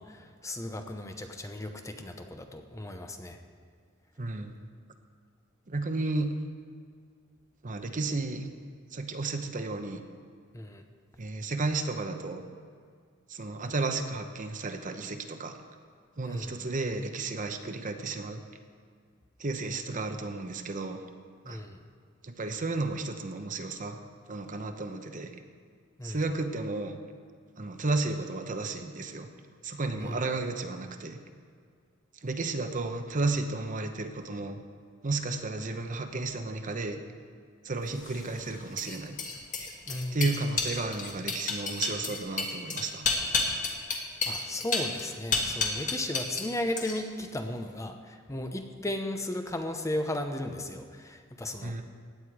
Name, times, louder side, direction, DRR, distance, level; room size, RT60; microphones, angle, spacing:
voice 1, 0.0-3.4 10.5-10.8 16.2-16.6 21.4-21.9 26.0-26.2 30.0-30.2 39.9-40.2 44.3-51.8, left 1 dB, 15° left, 5 dB, 0.8 m, -35 dB
voice 2, 4.2-4.6 5.7-6.4 7.6-8.5 8.9-10.0 11.2-12.4 13.3-15.6 16.2-18.4 19.4-21.0 21.5-21.6 22.2-24.0 24.3-25.3 26.0-27.0 27.6-29.3 29.6-31.2 32.2-34.6 35.0-37.0 37.6-39.2 40.1-43.1 51.6-51.8, right 3 dB, 40° right, 6 dB, 0.9 m, -33 dB
sound 1, 38.0-46.5 46.8-47.2, left 4 dB, 40° left, 1.7 m, -31 dB
16.0 x 9.7 x 4.8 m, 2.1 s
head